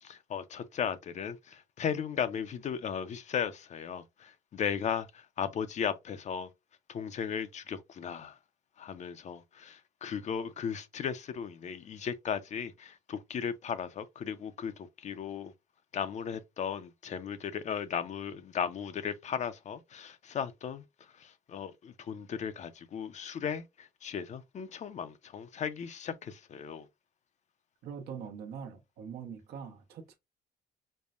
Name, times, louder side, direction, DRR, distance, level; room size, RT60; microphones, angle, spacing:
voice 1, 0.0-6.5 6.9-8.4 8.8-15.5 15.9-20.8 21.2-26.9, left 7 dB, 45° left, 0.6 m, -36 dB
voice 2, 27.8-30.1, right 7 dB, 70° right, 1.0 m, -43 dB
5.4 x 2.1 x 2.4 m
cardioid pair, 110°, 17 cm